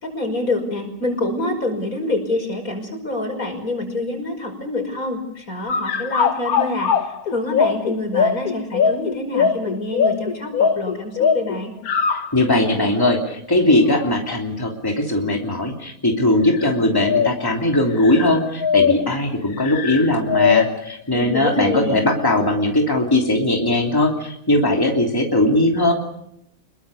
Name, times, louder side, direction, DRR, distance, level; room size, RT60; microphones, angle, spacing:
voice 1, 0.0-11.7 21.1-22.0, left 2 dB, 70° left, 4 dB, 6.1 m, -26 dB
sound 1, 5.7-12.4 13.0-13.1 13.9-14.3 15.2-15.4 16.5-16.7 17.0-17.5 18.0-19.2 19.6-20.9, left 6 dB, 85° left, 1.6 m, -21 dB
voice 2, 12.1-25.9, left 1 dB, 15° left, 1 dB, 3.1 m, -19 dB
26.5 x 22.0 x 6.8 m, 0.75 s
omnidirectional pair, 1.5 m